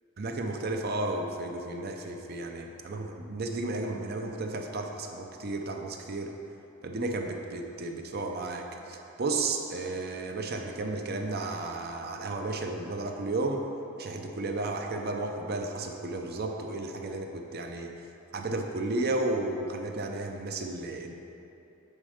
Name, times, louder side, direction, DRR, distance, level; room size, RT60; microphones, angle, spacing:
voice 1, 0.2-6.3 6.8-13.6 14.0-17.9 18.3-21.1, right 2 dB, 45° right, 3 dB, 0.6 m, -33 dB
9.8 x 4.3 x 5.0 m, 2.9 s
head